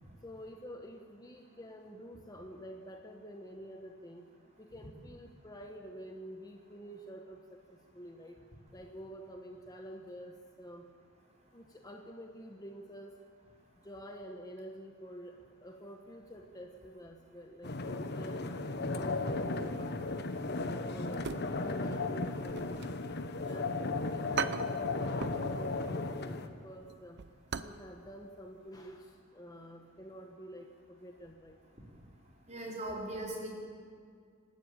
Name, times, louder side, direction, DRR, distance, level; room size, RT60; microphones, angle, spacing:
voice 1, 0.2-4.2 4.6-8.4 8.7-10.9 11.5-13.2 13.8-18.6 18.9-21.3 21.6-23.0 23.4-27.2 27.6-31.6, equal, 20° left, 3 dB, 1.3 m, -48 dB
sound 1, 17.6-26.5, left 3 dB, 55° left, 1.3 m, -35 dB
sound 2, 21.1-21.9 22.2-23.6 23.9-24.0 24.4-25.5 25.8-26.0 26.4-27.8 28.1-28.2 28.7-28.9 29.2-29.3, right 6 dB, 55° right, 0.8 m, -39 dB
voice 2, 32.5-33.5, right 1 dB, 35° right, -3 dB, 5.1 m, -39 dB
28.5 x 12.5 x 8.8 m, 2.1 s
head